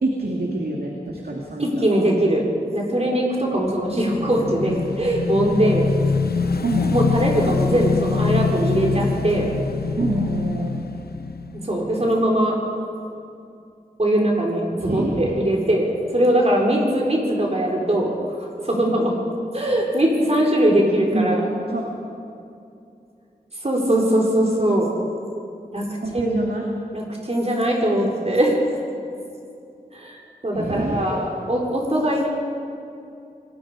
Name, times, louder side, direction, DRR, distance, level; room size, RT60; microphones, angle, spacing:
voice 1, 0.0-2.0 6.6-6.9 10.0-10.8 14.8-15.5 16.7-16.8 18.8-19.0 21.1-21.4 21.7-21.8 26.0-26.7 30.5-31.2, right 2 dB, 75° right, -1 dB, 2.2 m, -26 dB
voice 2, 1.6-2.4 2.7-5.9 6.9-9.5 11.5-12.6 14.0-15.8 16.1-18.1 18.4-19.1 19.5-21.4 23.6-24.9 25.7-25.8 26.1-26.3 26.9-28.5 29.9-32.3, right 1 dB, 40° right, -1 dB, 4.1 m, -21 dB
Motorcycle / Engine, 3.7-12.2, left 5 dB, 85° left, 0.8 m, -25 dB
26.0 x 20.5 x 5.0 m, 2.6 s
wide cardioid pair, 70°, 16 cm